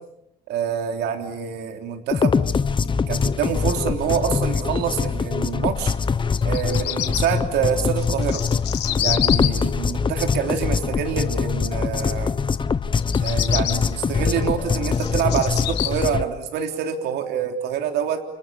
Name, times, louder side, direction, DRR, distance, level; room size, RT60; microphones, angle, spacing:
voice 1, 0.5-2.4 3.1-5.9 6.4-8.5 9.0-12.3 13.2-18.2, right 8 dB, 80° right, 5 dB, 3.4 m, -26 dB
sound 1, 2.1-16.2, left 5 dB, 30° left, 1.2 m, -23 dB
Bird vocalization bird call bird song, 6.4-7.2 8.0-9.5 13.0-13.7 14.4-15.9, left 14 dB, 80° left, 3.1 m, -26 dB
29.0 x 29.0 x 7.0 m, 0.78 s
cardioid pair, 110°, 17 cm